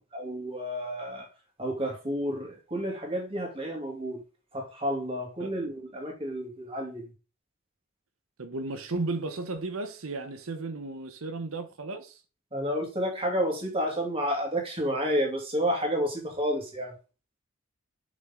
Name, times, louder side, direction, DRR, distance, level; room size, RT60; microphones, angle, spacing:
voice 1, 0.1-1.3 1.6-4.2 4.5-7.1 12.5-16.9, equal, 25° right, 2.5 m, -30 dB
voice 2, 8.4-12.2, right 3 dB, 85° right, 0.9 m, -34 dB
6.6 x 5.5 x 3.7 m
head